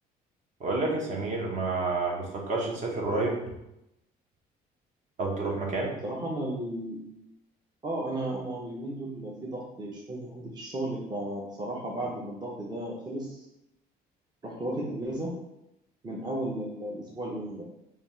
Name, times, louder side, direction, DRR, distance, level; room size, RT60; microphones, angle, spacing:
voice 1, 0.6-3.4 5.2-6.0, right 3 dB, 45° right, -1 dB, 1.1 m, -29 dB
voice 2, 6.0-7.0 7.8-13.4 14.4-15.3 16.0-17.6, right 1 dB, 25° right, -3 dB, 0.7 m, -34 dB
3.3 x 2.4 x 4.2 m, 0.85 s
cardioid pair, 110°, 17 cm